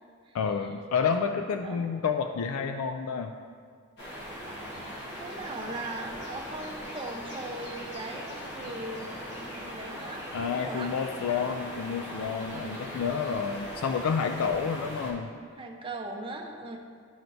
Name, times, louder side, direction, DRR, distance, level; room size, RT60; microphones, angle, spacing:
voice 1, 0.3-3.3 10.3-15.3, left 6 dB, 70° left, 6 dB, 0.3 m, -29 dB
voice 2, 1.3-1.8 4.7-10.9 12.4-12.9 15.3-16.8, right 2 dB, 25° right, 1 dB, 0.7 m, -40 dB
sound 1, 4.0-15.1, equal, 55° left, 1.3 m, -40 dB
12.0 x 4.4 x 2.6 m, 2.1 s
head